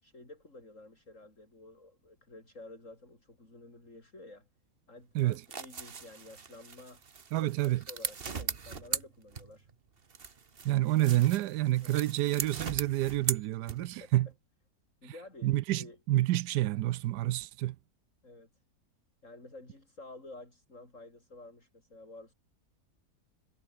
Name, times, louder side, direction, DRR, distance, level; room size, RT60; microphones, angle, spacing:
voice 1, 0.0-4.5 4.9-7.0 7.4-9.7 11.8-12.0 13.8-14.1 15.0-16.0 18.2-18.5 19.2-22.3, left 2 dB, 50° left, 6.6 m, -51 dB
sound 1, 5.2-9.7 10.1-14.1, right 5 dB, 40° right, 1.4 m, -39 dB
voice 2, 7.3-7.8 10.6-14.3 15.0-15.1 15.4-17.8, right 16 dB, 90° right, 1.2 m, -28 dB
omnidirectional pair, 1.7 m